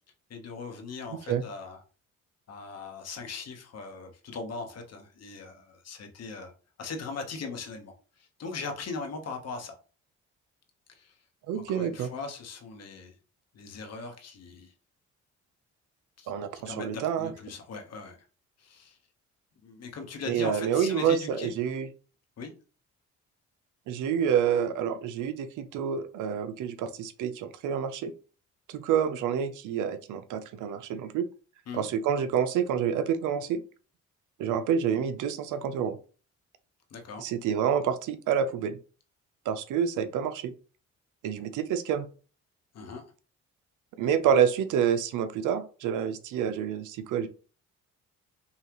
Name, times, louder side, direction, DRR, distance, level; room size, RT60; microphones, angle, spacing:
voice 1, 0.3-1.8 2.5-6.5 6.8-9.7 10.9-11.2 11.5-13.1 13.5-14.7 16.2-18.2 18.6-19.0 19.6-21.5 22.4-22.5 31.7-31.9 36.9-37.2 42.7-43.0, left 4 dB, 55° left, 4 dB, 1.2 m, -39 dB
voice 2, 11.5-12.1 16.3-17.3 20.3-21.9 23.9-28.1 28.7-31.2 31.7-33.6 34.4-36.0 37.2-38.8 39.5-40.5 41.2-42.1 44.0-47.3, right 8 dB, 85° right, 11 dB, 0.6 m, -28 dB
5.5 x 2.3 x 3.0 m, 0.37 s
cardioid pair, 90°, 30 cm